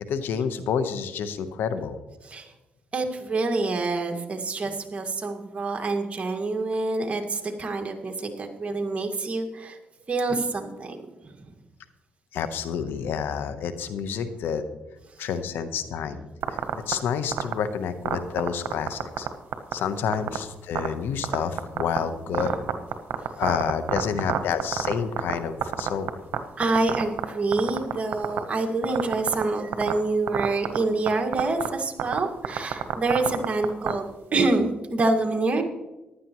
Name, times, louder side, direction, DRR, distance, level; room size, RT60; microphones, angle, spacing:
voice 1, 0.1-2.0 12.3-14.6 15.2-16.2 16.5-19.3 19.7-22.5 23.4-26.1, left 7 dB, 80° left, 11 dB, 0.9 m, -29 dB
voice 2, 2.9-9.8 10.1-11.0 11.2-11.5 22.3-22.6 24.3-24.4 26.6-35.6, right 3 dB, 40° right, 3 dB, 1.9 m, -27 dB
sound 1, 16.4-16.9 17.3-17.5 18.1-19.3 19.5-19.7 20.1-20.4 20.8-20.9 21.2-22.0 22.3-25.3 25.6-26.4 26.6-27.2 27.5-28.4 28.8-29.4 29.7-29.9 30.3-30.8 31.1-31.2 31.3-31.7 32.0-32.2 32.4-33.9, right 11 dB, 80° right, 1.0 m, -25 dB
15.0 x 11.5 x 3.1 m, 1.0 s
cardioid pair, 75°, 4 cm